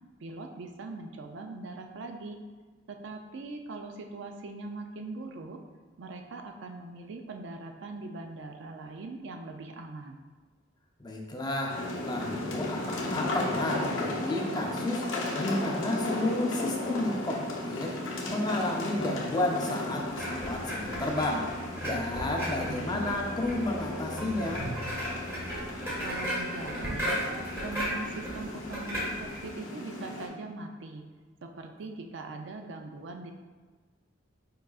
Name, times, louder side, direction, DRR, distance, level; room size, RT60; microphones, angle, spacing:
voice 1, 0.2-2.4 2.9-5.6 6.0-10.3 22.4-23.0 26.0-27.2 27.6-31.0 31.4-33.3, right 3 dB, 65° right, 4 dB, 0.4 m, -41 dB
voice 2, 11.0-11.8 12.1-15.0 15.4-18.0 18.3-21.5 21.8-24.7, left 1 dB, 20° left, 0 dB, 0.5 m, -31 dB
sound 1, 11.7-30.3, left 2 dB, 80° left, 0.9 m, -35 dB
sound 2, 20.1-29.5, equal, 15° right, 1.4 m, -36 dB
4.7 x 4.7 x 2.4 m, 1.4 s
head